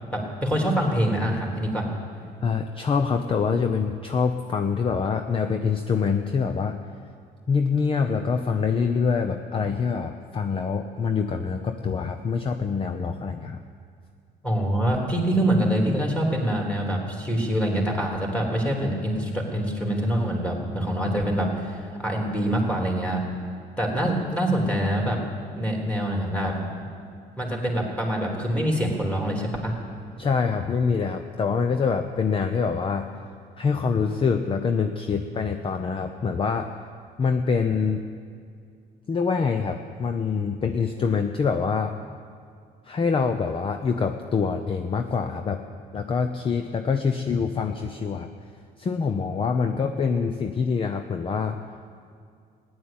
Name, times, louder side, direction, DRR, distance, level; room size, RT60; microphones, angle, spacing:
voice 1, 0.1-1.9 14.4-23.2 23.8-25.2 25.5-26.5 27.4-29.7, equal, 10° left, -1 dB, 3.4 m, -25 dB
voice 2, 2.4-6.8 7.5-13.6 30.2-33.1 33.6-36.8 37.2-38.0 39.1-41.9 42.9-45.6 45.9-48.3 48.8-51.6, left 5 dB, 30° left, 6 dB, 0.8 m, -25 dB
15.5 x 10.5 x 8.9 m, 2.2 s
cardioid pair, 110°, 17 cm